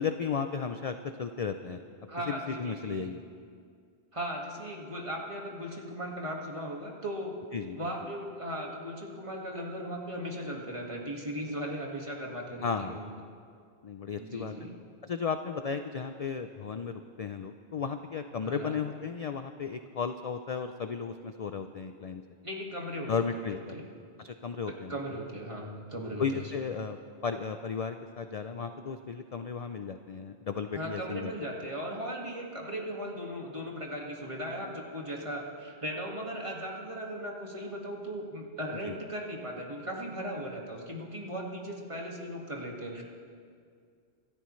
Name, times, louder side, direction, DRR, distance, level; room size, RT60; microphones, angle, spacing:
voice 1, 0.0-1.8 2.3-3.2 7.5-7.8 12.6-13.0 13.8-14.5 15.0-22.2 23.1-23.7 24.2-25.0 26.2-27.0 27.2-31.3 38.9-39.0, left 6 dB, 50° left, 8 dB, 0.5 m, -34 dB
voice 2, 2.1-3.1 4.1-7.4 7.8-13.1 14.2-14.7 18.4-18.8 22.4-23.8 24.9-26.5 30.7-43.0, equal, 30° right, -2 dB, 2.0 m, -37 dB
26.0 x 13.5 x 3.2 m, 2.2 s
omnidirectional pair, 1.1 m